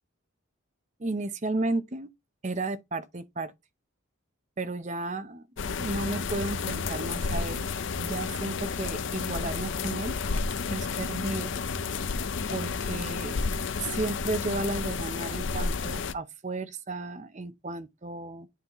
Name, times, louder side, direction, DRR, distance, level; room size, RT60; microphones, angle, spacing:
voice 1, 1.0-2.1 2.4-3.5 4.6-7.7 8.0-10.2 10.7-11.5 12.5-13.4 13.8-18.5, right 2 dB, 35° right, 0.7 m, -33 dB
sound 1, 5.6-16.1, left 4 dB, 60° left, 0.5 m, -31 dB
9.3 x 4.0 x 3.0 m
head